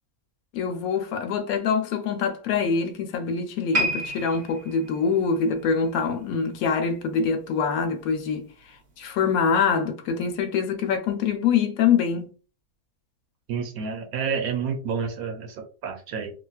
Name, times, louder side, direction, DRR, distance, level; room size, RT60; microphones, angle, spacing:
voice 1, 0.5-8.5 9.0-12.3, left 6 dB, 75° left, 1.0 m, -24 dB
sound 1, 3.7-7.0 7.3-7.6 8.3-8.4, right 2 dB, 45° right, 0.8 m, -31 dB
voice 2, 13.5-16.3, right 6 dB, 75° right, 1.0 m, -29 dB
3.5 x 2.3 x 2.2 m
omnidirectional pair, 1.6 m